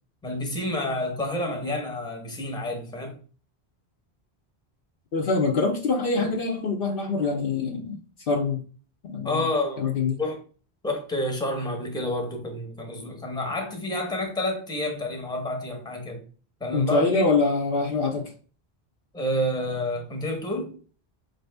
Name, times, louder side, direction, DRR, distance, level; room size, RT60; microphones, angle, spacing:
voice 1, 0.2-3.2 9.2-9.8 10.2-10.4 10.8-16.2 16.6-17.3 19.1-20.7, left 1 dB, 5° left, 0.8 m, -29 dB
voice 2, 5.1-8.0 8.3-8.6 9.1-9.4 9.8-10.2 16.7-18.3, left 4 dB, 60° left, 0.8 m, -24 dB
4.7 x 2.6 x 3.3 m
omnidirectional pair, 1.1 m